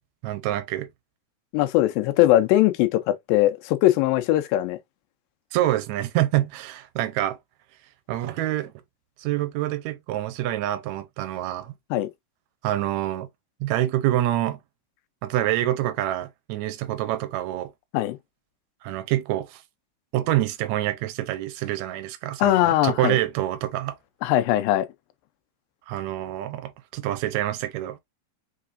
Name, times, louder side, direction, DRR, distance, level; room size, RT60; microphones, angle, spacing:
voice 1, 0.2-0.9 5.5-7.4 8.1-8.7 9.2-11.7 12.6-13.3 13.6-14.6 15.2-17.7 18.8-19.6 20.1-23.9 25.9-28.0, right 14 dB, 80° right, 1.7 m, -26 dB
voice 2, 1.5-4.8 11.9-12.1 17.9-18.2 22.4-23.2 24.2-24.9, left 14 dB, 90° left, 2.4 m, -20 dB
5.8 x 3.4 x 2.5 m
omnidirectional pair, 4.0 m